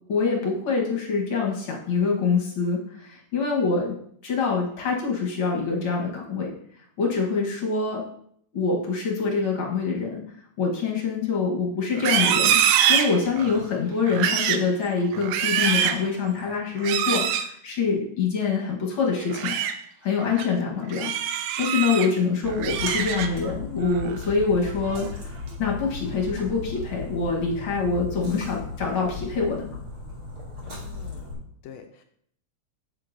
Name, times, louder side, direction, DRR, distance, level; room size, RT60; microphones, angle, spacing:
voice 1, 0.1-3.9 4.2-6.5 7.0-8.0 8.5-10.2 10.6-12.6 12.9-19.5 20.0-21.1 21.6-29.7, left 4 dB, 55° left, -1 dB, 1.6 m, -25 dB
Livestock farm animals working animals, 11.9-13.6 14.1-14.7 15.1-16.1 16.8-17.5 19.2-19.7 20.2-20.5 20.9-22.1 22.5-23.5 23.9-24.2 24.7-25.1, right 9 dB, 80° right, 1.9 m, -24 dB
Splash splatter, 22.4-31.3, left 3 dB, 35° right, 1.8 m, -36 dB
voice 2, 30.6-32.0, left 7 dB, 80° left, 6 dB, 1.6 m, -46 dB
8.4 x 7.7 x 2.6 m, 0.66 s
omnidirectional pair, 3.5 m